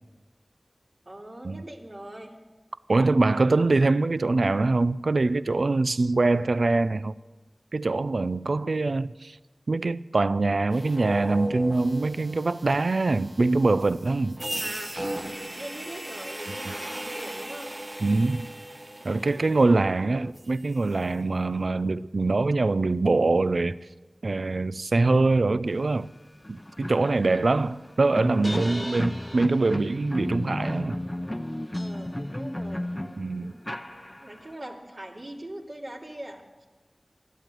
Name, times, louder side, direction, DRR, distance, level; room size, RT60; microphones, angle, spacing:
voice 1, 1.0-2.3 3.2-3.6 8.5-8.7 14.6-15.0 15.5-18.0 19.0-20.0 27.1-27.8 28.6-28.9 31.7-33.6 34.2-36.4, right 1 dB, 55° right, 2.8 m, -42 dB
voice 2, 2.9-7.1 7.7-9.4 9.7-14.4 16.5-16.7 18.0-18.5 19.0-23.8 24.2-26.1 26.5-31.0 33.2-33.5, right 3 dB, 85° right, 0.4 m, -24 dB
sound 1, 10.7-20.8, right 1 dB, 30° right, 1.2 m, -37 dB
sound 2, 26.0-26.1 26.4-34.5, left 1 dB, 20° left, 0.7 m, -33 dB
13.5 x 12.0 x 7.7 m
wide cardioid pair, 60°, 0 cm